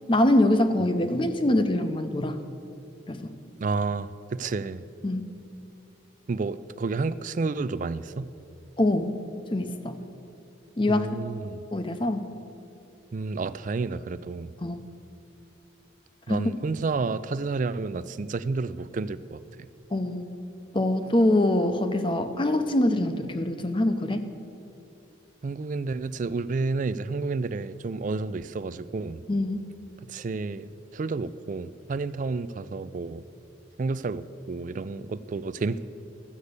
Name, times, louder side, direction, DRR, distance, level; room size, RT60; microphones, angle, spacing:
voice 1, 0.1-2.4 3.1-3.3 5.0-5.2 8.8-9.1 9.5-10.0 10.8-11.1 11.7-12.3 14.6-14.8 16.3-16.5 19.9-20.3 20.7-24.2 29.3-29.6, left 1 dB, 25° left, 9 dB, 0.6 m, -24 dB
voice 2, 3.6-4.8 6.3-8.3 10.9-11.6 13.1-14.5 16.3-19.4 25.4-29.2 30.1-33.2 33.8-35.8, right 4 dB, 40° right, 16 dB, 0.3 m, -30 dB
13.0 x 8.2 x 6.6 m, 2.7 s
head